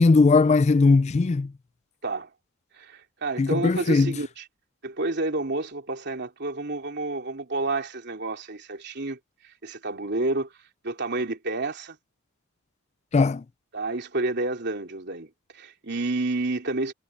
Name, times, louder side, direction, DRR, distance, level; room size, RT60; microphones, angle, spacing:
voice 1, 0.0-1.5 3.4-4.2 13.1-13.4, left 3 dB, 30° left, 0.3 m, -19 dB
voice 2, 2.7-4.4 4.8-9.2 9.6-10.5 10.8-12.0 13.7-16.9, right 2 dB, 50° right, 3.2 m, -29 dB
head